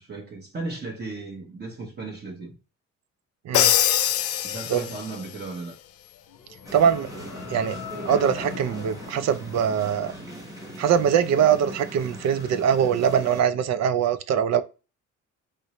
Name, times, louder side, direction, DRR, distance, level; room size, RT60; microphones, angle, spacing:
voice 1, 0.0-2.6 4.4-5.8, right 3 dB, 35° right, 0.9 m, -36 dB
Crash cymbal, 3.5-5.2, left 11 dB, 55° left, 0.4 m, -22 dB
sound 1, 6.2-10.4, left 5 dB, 75° left, 0.8 m, -41 dB
sound 2, 6.6-13.4, equal, 10° right, 1.1 m, -39 dB
voice 2, 6.7-7.8 8.0-10.1 10.8-14.6, right 8 dB, 60° right, 0.4 m, -22 dB
3.1 x 2.6 x 2.9 m
cardioid pair, 90°, 30 cm